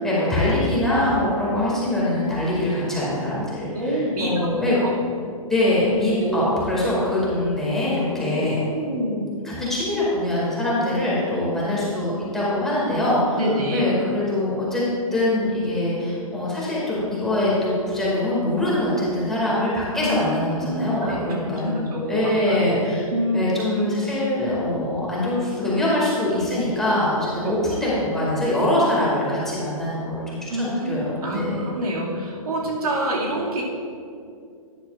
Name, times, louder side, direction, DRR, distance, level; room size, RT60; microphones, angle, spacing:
voice 1, 0.0-4.8 5.5-8.6 9.4-13.4 13.7-23.1 23.3-31.6, left 1 dB, ahead, -8 dB, 2.2 m, -23 dB
voice 2, 3.7-4.5 4.8-4.9 6.2-6.5 8.2-8.4 8.7-9.3 13.4-13.8 20.0-20.1 20.7-22.2 22.5-22.9 23.1-23.5 30.5-33.6, right 1 dB, 90° right, -4 dB, 2.3 m, -27 dB
10.5 x 10.0 x 2.5 m, 2.4 s
hypercardioid pair, 150°, 19 cm